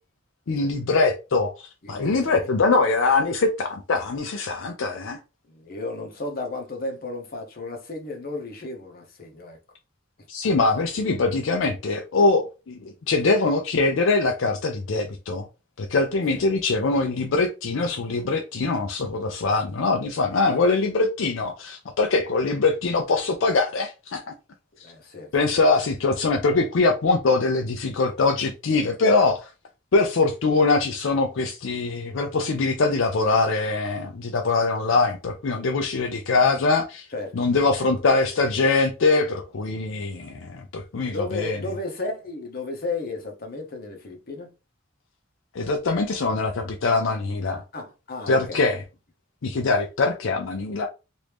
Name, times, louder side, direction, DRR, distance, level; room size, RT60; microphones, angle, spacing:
voice 1, 0.5-5.2 10.3-15.5 15.8-24.2 24.8-24.9 25.3-29.5 29.9-37.1 37.4-41.6 45.5-47.6 48.3-48.8 49.4-50.9, left 3 dB, 70° left, 0.5 m, -23 dB
voice 2, 1.8-2.4 5.5-9.6 16.3-16.4 24.8-25.3 37.1-37.4 41.0-44.5 47.7-48.6, left 2 dB, 50° left, 0.9 m, -33 dB
3.0 x 2.6 x 3.4 m
head